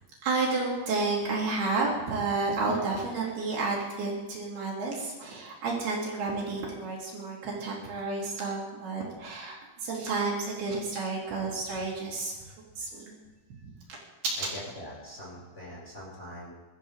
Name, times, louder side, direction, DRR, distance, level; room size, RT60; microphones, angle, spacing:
voice 1, 0.2-12.3 12.8-13.2 13.6-13.7 14.4-14.5, right 3 dB, 70° right, -4 dB, 5.5 m, -31 dB
voice 2, 14.5-16.5, equal, 15° left, -5 dB, 6.1 m, -43 dB
23.0 x 13.5 x 3.8 m, 1.2 s
omnidirectional pair, 4.6 m